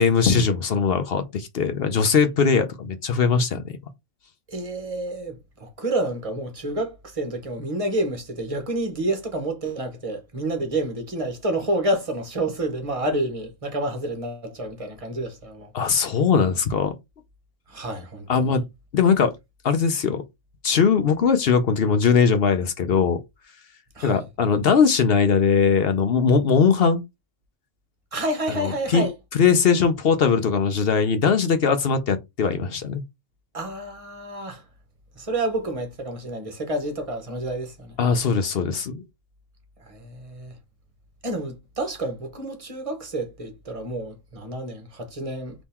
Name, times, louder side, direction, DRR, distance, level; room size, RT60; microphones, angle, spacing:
voice 1, 0.0-3.7 15.7-16.9 18.3-18.6 18.9-19.3 19.6-20.2 20.6-23.2 24.0-27.0 28.6-29.1 29.3-33.0 38.0-39.0, left 6 dB, 55° left, 0.8 m, -20 dB
voice 2, 4.5-15.7 17.7-18.6 23.9-24.2 28.1-29.1 33.5-34.6 35.2-38.0 39.8-40.5 41.2-45.5, right 1 dB, 25° right, 1.1 m, -29 dB
3.7 x 3.0 x 4.2 m
omnidirectional pair, 1.4 m